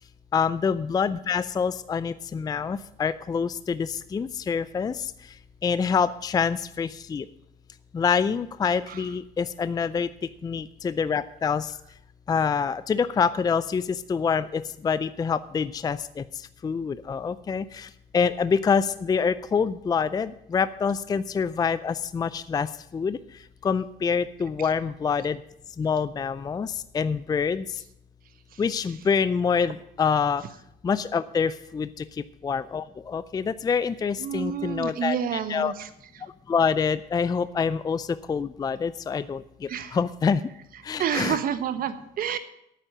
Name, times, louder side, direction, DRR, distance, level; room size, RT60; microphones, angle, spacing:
voice 1, 0.3-5.1 5.6-7.3 7.9-10.1 10.4-11.7 12.3-16.2 16.6-22.7 22.9-23.2 23.6-25.4 25.8-27.6 28.6-30.4 30.8-32.0 32.4-35.7 36.5-40.4 40.8-41.4, left 6 dB, 25° left, 15 dB, 0.4 m, -26 dB
voice 2, 34.2-35.9 36.1-36.2 39.7-40.0 41.0-42.4, right 8 dB, 60° right, 11 dB, 1.2 m, -29 dB
8.9 x 8.5 x 9.1 m, 0.77 s
cardioid pair, 110°, 17 cm